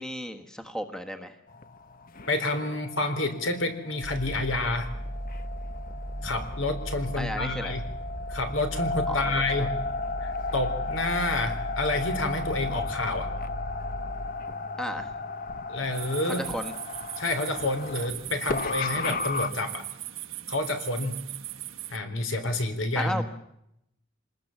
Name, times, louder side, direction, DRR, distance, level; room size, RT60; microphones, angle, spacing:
voice 1, 0.0-1.4 7.2-7.8 9.1-9.7 14.8-15.1 16.2-16.7 22.9-23.2, equal, 5° left, 6 dB, 1.4 m, -34 dB
sound 1, 1.5-19.5, left 3 dB, 45° left, 1.1 m, -35 dB
voice 2, 2.3-4.9 6.2-7.8 8.3-9.7 10.2-13.3 15.7-16.4 17.2-19.9 20.5-21.2 21.9-23.2, left 2 dB, 75° left, 7 dB, 3.9 m, -29 dB
sound 2, 4.0-14.3, equal, 20° right, 1.5 m, -37 dB
sound 3, 15.9-22.0, right 14 dB, 85° right, 1.4 m, -39 dB
26.0 x 20.5 x 7.3 m, 0.79 s
head